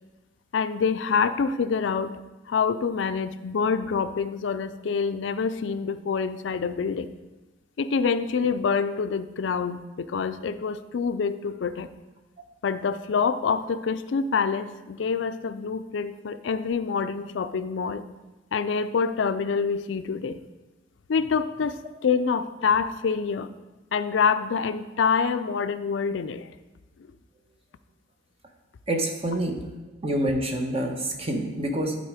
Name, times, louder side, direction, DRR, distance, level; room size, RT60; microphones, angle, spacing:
voice 1, 0.5-2.2 2.5-7.1 7.8-11.9 12.6-18.0 18.5-20.4 21.1-23.5 23.9-26.5, left 5 dB, 75° left, 12 dB, 0.4 m, -26 dB
voice 2, 28.9-29.6 30.0-32.0, right 1 dB, 30° right, 2 dB, 1.0 m, -27 dB
11.5 x 4.1 x 4.9 m, 1.1 s
head